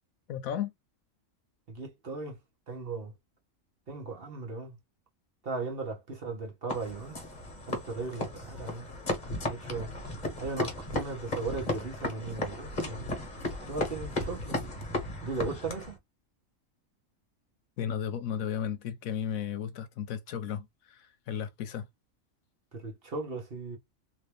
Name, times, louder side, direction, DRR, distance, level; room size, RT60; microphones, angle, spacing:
voice 1, 0.3-0.7 17.8-21.8, left 9 dB, 80° left, 1.1 m, -34 dB
voice 2, 1.7-2.4 2.7-3.1 3.9-4.8 5.4-7.2 7.6-8.9 9.5-9.9 10.4-13.1 13.7-14.6 15.2-16.0 22.7-23.8, right 3 dB, 45° right, 1.1 m, -37 dB
sound 1, 6.7-16.0, left 2 dB, 35° left, 1.2 m, -35 dB
3.1 x 2.9 x 3.2 m
omnidirectional pair, 1.4 m